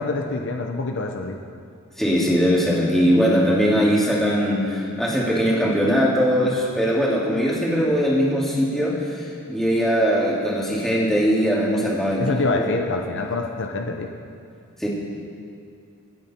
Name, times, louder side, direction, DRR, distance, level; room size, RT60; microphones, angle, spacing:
voice 1, 0.0-1.4 12.2-14.1, left 3 dB, 60° left, 3 dB, 0.8 m, -26 dB
voice 2, 2.0-12.7 14.8-14.9, equal, ahead, -5 dB, 2.8 m, -21 dB
25.5 x 9.1 x 4.4 m, 2.5 s
head